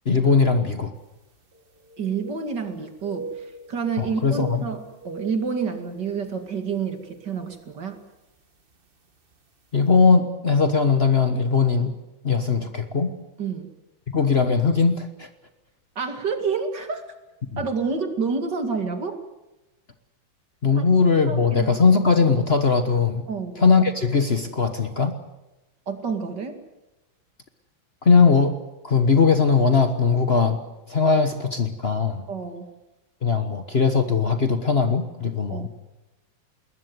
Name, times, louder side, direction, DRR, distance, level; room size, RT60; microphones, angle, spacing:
voice 1, 0.0-0.9 4.0-4.6 9.7-11.9 12.2-13.1 14.1-15.3 17.5-17.6 20.6-23.2 23.6-25.1 28.0-28.5 28.8-30.6 30.9-32.2 33.2-35.7, left 5 dB, 35° left, 8 dB, 1.3 m, -20 dB
sound 1, 1.0-1.1 1.4-2.7 3.0-6.3 6.7-6.9 7.5-7.8 8.9-9.0 9.3-9.4, right 3 dB, 30° right, 1.6 m, -40 dB
voice 2, 2.0-8.0 13.4-13.7 16.0-17.0 17.6-19.2 20.7-20.8 21.3-21.7 23.3-23.6 25.9-26.6 32.3-32.7 35.5-35.7, right 5 dB, 60° right, 6 dB, 2.9 m, -29 dB
21.5 x 20.0 x 9.4 m, 1.0 s
omnidirectional pair, 2.1 m